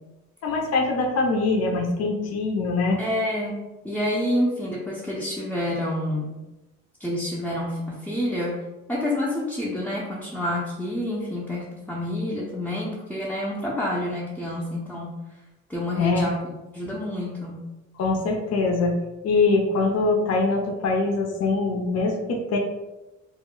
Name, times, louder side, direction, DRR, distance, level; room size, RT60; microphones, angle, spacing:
voice 1, 0.4-3.0 16.0-16.2 18.0-18.9 19.2-22.6, left 3 dB, 55° left, 1 dB, 0.6 m, -23 dB
voice 2, 3.0-6.4 7.0-8.6 8.9-15.1 15.7-16.4 16.7-17.6, left 1 dB, 5° left, -6 dB, 0.5 m, -28 dB
2.1 x 2.0 x 3.6 m, 1.0 s
cardioid pair, 90°, 30 cm